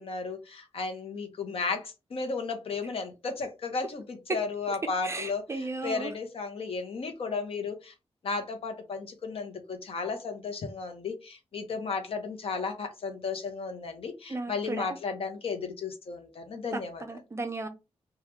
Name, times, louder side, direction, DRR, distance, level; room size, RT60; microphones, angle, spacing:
voice 1, 0.0-7.9 8.2-17.0, left 4 dB, 60° left, 0.8 m, -34 dB
voice 2, 5.0-6.1 14.3-14.9 16.7-17.7, right 3 dB, 25° right, 0.4 m, -35 dB
2.9 x 2.3 x 3.3 m
wide cardioid pair, 150°, 11 cm